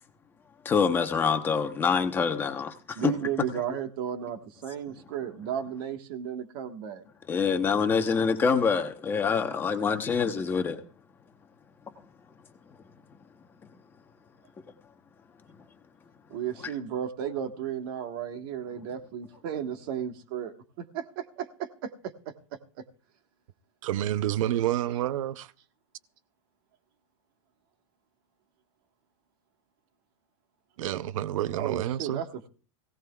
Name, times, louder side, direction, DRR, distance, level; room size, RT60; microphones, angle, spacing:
voice 1, 0.6-3.1 7.3-10.8, left 5 dB, 10° left, 0.9 m, -25 dB
voice 2, 2.9-7.0 16.3-22.8 31.5-32.5, right 9 dB, 45° right, 1.5 m, -34 dB
voice 3, 23.8-25.5 30.8-32.2, right 12 dB, 80° right, 0.6 m, -29 dB
21.5 x 17.0 x 2.3 m
supercardioid pair, 175°, 17 cm